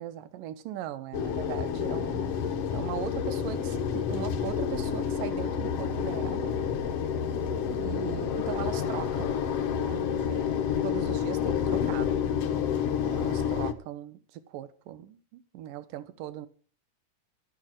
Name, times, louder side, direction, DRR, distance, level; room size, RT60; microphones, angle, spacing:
voice 1, 0.0-2.3 2.7-6.6 7.7-9.4 9.7-10.5 10.8-12.1 13.0-16.5, right 12 dB, 75° right, 2.6 m, -39 dB
sound 1, 1.1-13.7, left 7 dB, 65° left, 1.6 m, -29 dB
13.0 x 8.9 x 7.6 m
omnidirectional pair, 4.0 m